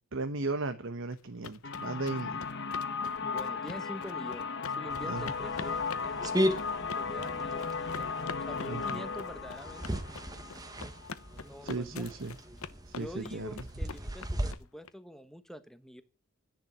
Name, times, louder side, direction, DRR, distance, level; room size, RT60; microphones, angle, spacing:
voice 1, 0.1-2.4 5.0-5.3 8.7-9.0 11.6-12.4 12.9-13.5, right 3 dB, 60° right, 1.0 m, -36 dB
sound 1, 1.1-14.9, left 5 dB, 70° left, 0.9 m, -45 dB
sound 2, 1.6-11.3, left 5 dB, 50° left, 1.5 m, -36 dB
voice 2, 3.2-4.5 4.8-6.3 6.9-8.1 8.5-10.0 11.4-12.3 13.0-16.0, equal, ahead, 1.1 m, -45 dB
sound 3, 4.9-14.5, equal, 15° right, 1.3 m, -37 dB
11.0 x 10.5 x 8.8 m
head